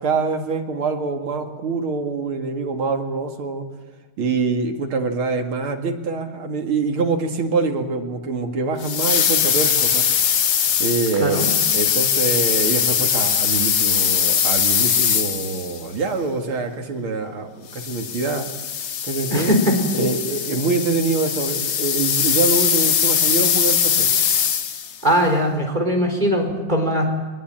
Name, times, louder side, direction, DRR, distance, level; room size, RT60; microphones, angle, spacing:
voice 1, 0.0-3.7 4.2-10.0 10.8-11.4 11.7-18.5 19.1-19.5 19.9-24.1, right 4 dB, 75° right, 4 dB, 3.0 m, -24 dB
sound 1, 8.8-15.8 17.7-25.0, left 8 dB, 60° left, 1.9 m, -21 dB
voice 2, 19.3-19.7 25.0-27.0, equal, 20° right, 2 dB, 4.3 m, -20 dB
22.0 x 20.0 x 9.0 m, 1.3 s
omnidirectional pair, 2.3 m